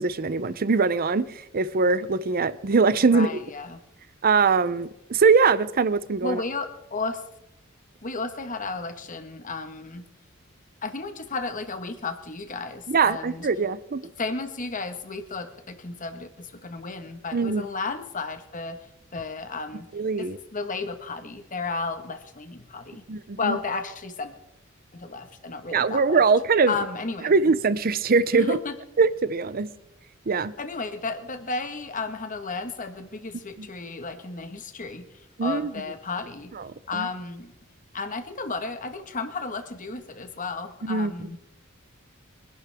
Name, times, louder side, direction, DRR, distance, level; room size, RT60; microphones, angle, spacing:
voice 1, 0.0-3.4 4.2-6.4 12.9-14.0 17.3-17.6 19.9-20.4 23.1-23.6 25.7-26.7 27.2-28.6 29.0-29.7 30.3-30.5 33.6-33.7 35.4-35.7 36.9-37.1 40.8-41.4, right 4 dB, 45° right, 0.6 m, -22 dB
voice 2, 3.1-3.8 6.2-7.2 8.0-10.1 10.8-13.5 14.2-18.8 19.1-19.9 20.2-23.0 23.4-24.3 24.9-26.2 26.7-27.3 28.3-28.7 30.6-36.5 36.9-37.5 37.9-41.4, left 3 dB, 40° left, 1.5 m, -33 dB
23.5 x 12.0 x 3.6 m
head